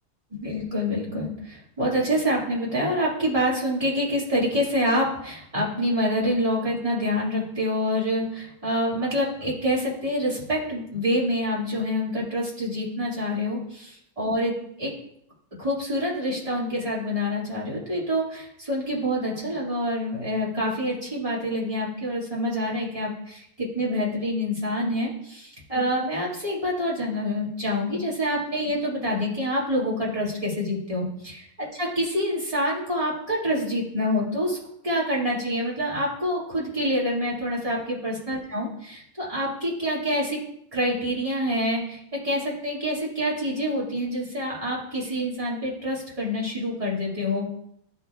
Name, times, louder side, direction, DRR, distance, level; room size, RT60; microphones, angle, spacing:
voice 1, 0.3-13.8 14.2-14.5 14.8-14.9 15.6-25.4 25.7-31.4 31.7-34.6 34.8-40.4 40.7-47.5, equal, 25° right, -7 dB, 2.3 m, -26 dB
11.5 x 4.4 x 2.4 m, 0.74 s
omnidirectional pair, 1.4 m